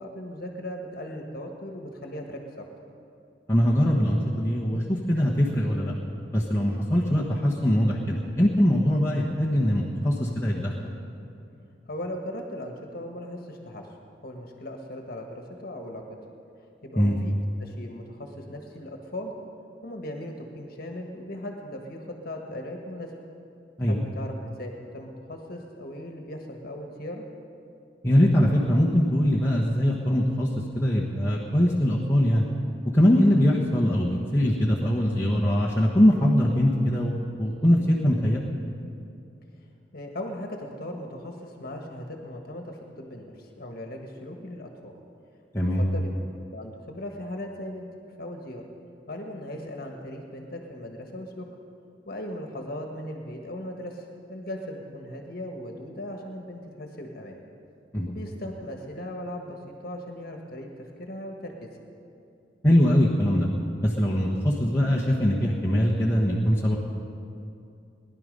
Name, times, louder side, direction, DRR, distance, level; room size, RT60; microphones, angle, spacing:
voice 1, 0.0-2.6 11.9-16.2 16.8-17.3 17.6-19.3 19.8-23.1 23.8-27.2 39.9-44.9 45.6-46.1 46.5-47.9 48.2-48.6 49.1-51.5 52.1-57.4 58.0-61.7, left 1 dB, 55° left, 2 dB, 1.5 m, -38 dB
voice 2, 3.5-5.9 6.3-10.9 17.0-17.2 23.8-24.0 28.0-30.5 30.7-32.4 32.9-38.4 45.5-45.8 57.9-58.1 62.6-63.5 63.8-66.8, equal, 15° left, -6 dB, 1.2 m, -22 dB
19.5 x 11.0 x 5.3 m, 2.6 s
head